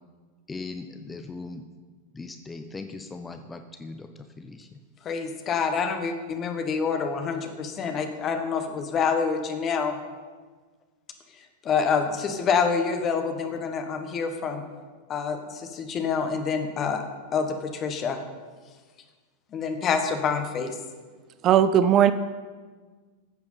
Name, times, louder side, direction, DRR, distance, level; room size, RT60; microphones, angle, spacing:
voice 1, 0.5-1.6 2.1-4.1 4.4-4.7, left 3 dB, 10° left, 6 dB, 0.7 m, -39 dB
voice 2, 5.0-10.0 11.6-14.6 15.1-17.0 17.3-18.2 19.5-20.7, left 5 dB, 30° left, 6 dB, 1.5 m, -27 dB
voice 3, 21.4-22.1, right 10 dB, 35° right, 13 dB, 0.5 m, -17 dB
14.5 x 8.0 x 5.6 m, 1.5 s
figure-of-eight pair, 90°, 0 cm